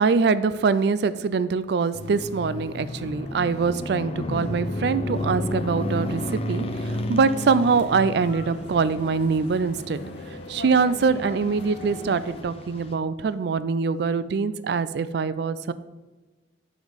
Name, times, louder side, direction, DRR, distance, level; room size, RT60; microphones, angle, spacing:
voice 1, 0.0-10.0 10.5-15.7, right 5 dB, 65° right, 15 dB, 0.4 m, -23 dB
sound 1, 1.9-12.9, left 1 dB, 35° left, 0.6 m, -32 dB
sound 2, 7.4-12.4, left 1 dB, 65° left, 0.8 m, -41 dB
8.0 x 5.0 x 4.1 m, 1.2 s
head